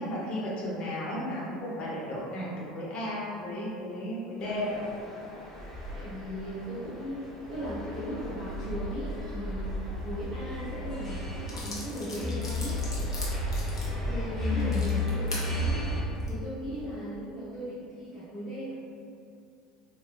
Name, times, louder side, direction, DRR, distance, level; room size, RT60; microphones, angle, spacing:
voice 1, 0.0-4.8 14.4-14.8, left 1 dB, 40° left, -6 dB, 1.0 m, -34 dB
sound 1, 4.4-16.0, left 1 dB, 15° left, 1.1 m, -34 dB
voice 2, 5.9-12.8 13.9-18.7, equal, 20° right, -13 dB, 1.1 m, -38 dB
sound 2, 11.5-15.5 16.0-16.3, left 1 dB, 85° left, 0.6 m, -40 dB
4.1 x 2.1 x 2.5 m, 2.5 s
figure-of-eight pair, 70°, 3 cm